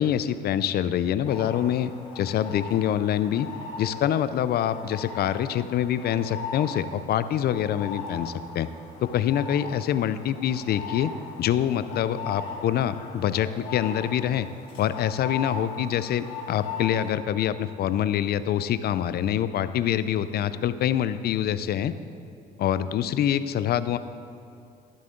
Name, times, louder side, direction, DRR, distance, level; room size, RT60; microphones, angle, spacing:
voice 1, 0.0-3.5 3.8-8.7 9.0-11.1 11.4-14.5 14.8-21.9 22.6-24.0, left 10 dB, 55° left, 13 dB, 0.5 m, -25 dB
sound 1, 1.2-17.1, left 4 dB, 80° left, 1.7 m, -39 dB
12.5 x 7.4 x 3.8 m, 2.6 s
supercardioid pair, 70°, 20 cm